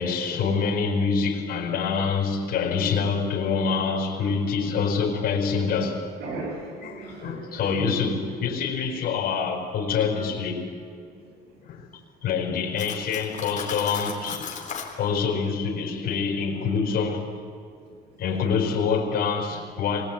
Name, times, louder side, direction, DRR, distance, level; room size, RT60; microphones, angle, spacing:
voice 1, 0.0-6.1 6.9-10.8 11.6-11.9 12.2-14.5 15.0-17.3 18.2-20.0, left 5 dB, 65° left, 5.1 m, -26 dB
voice 2, 6.2-8.0 11.1-11.6 14.9-15.0 16.5-16.7 17.9-18.2 18.6-18.8, right 2 dB, 80° right, 7.9 m, -38 dB
Cutlery silverware, 12.8-14.9, left 7 dB, 45° left, 3.7 m, -36 dB
24.0 x 20.5 x 9.2 m
cardioid pair, 110°, 17 cm